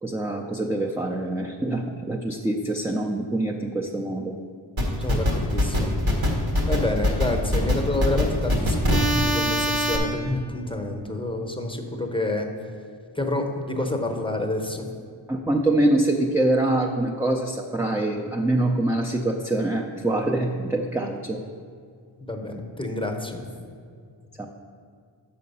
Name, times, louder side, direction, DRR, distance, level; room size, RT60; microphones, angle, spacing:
voice 1, 0.0-4.3 15.3-21.4 24.4-24.5, right 1 dB, 5° right, 0 dB, 0.4 m, -24 dB
sound 1, 4.8-10.0, left 1 dB, 80° right, 1.4 m, -22 dB
voice 2, 5.0-5.9 6.7-12.5 13.1-14.9 22.2-23.5, left 2 dB, 10° left, 3 dB, 0.8 m, -28 dB
6.4 x 5.7 x 5.4 m, 2.2 s
wide cardioid pair, 50°, 47 cm